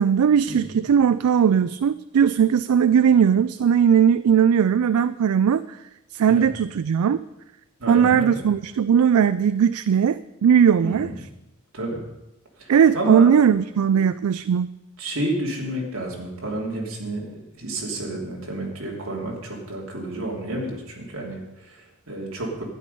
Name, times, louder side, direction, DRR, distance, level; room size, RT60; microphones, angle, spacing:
voice 1, 0.0-5.8 6.1-7.2 7.9-11.1 12.7-14.7, right 7 dB, 80° right, 14 dB, 0.4 m, -18 dB
voice 2, 7.8-8.4 10.8-11.2 11.7-12.0 12.6-13.4 13.9-14.0 15.0-22.6, right 1 dB, 65° right, -2 dB, 3.0 m, -30 dB
12.5 x 10.0 x 5.3 m, 0.96 s
head